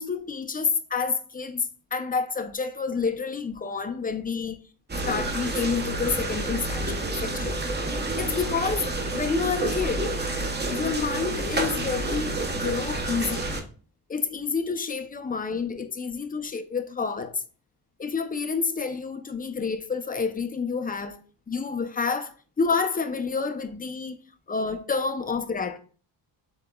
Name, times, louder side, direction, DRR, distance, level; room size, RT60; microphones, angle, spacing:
voice 1, 0.0-4.6 5.1-6.9 7.2-7.6 8.2-10.2 10.7-13.6 14.1-17.4 18.0-21.2 21.5-24.2 24.5-25.8, left 5 dB, 20° left, 0.4 m, -29 dB
sound 1, 4.9-13.6, right 2 dB, 20° right, 0.8 m, -29 dB
7.7 x 2.9 x 2.2 m
cardioid pair, 100°, 45 cm